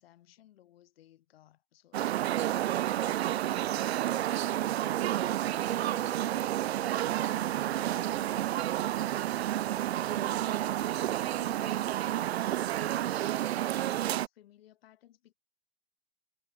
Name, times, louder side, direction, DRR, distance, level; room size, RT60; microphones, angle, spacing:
voice 1, 0.0-9.6 10.1-15.4, left 13 dB, 65° left, 7.1 m, -58 dB
sound 1, 1.9-14.3, right 13 dB, 80° right, 1.0 m, -30 dB
hypercardioid pair, 145°, 31 cm